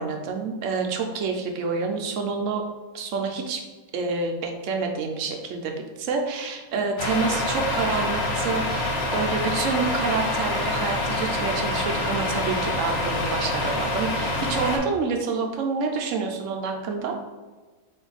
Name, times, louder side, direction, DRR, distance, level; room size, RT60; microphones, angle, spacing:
voice 1, 0.0-2.6 2.9-3.6 3.9-5.7 6.0-17.2, right 4 dB, 70° right, 3 dB, 0.9 m, -28 dB
Truck, 7.0-14.8, left 2 dB, 75° left, 1.2 m, -26 dB
4.2 x 2.6 x 3.9 m, 1.3 s
omnidirectional pair, 1.5 m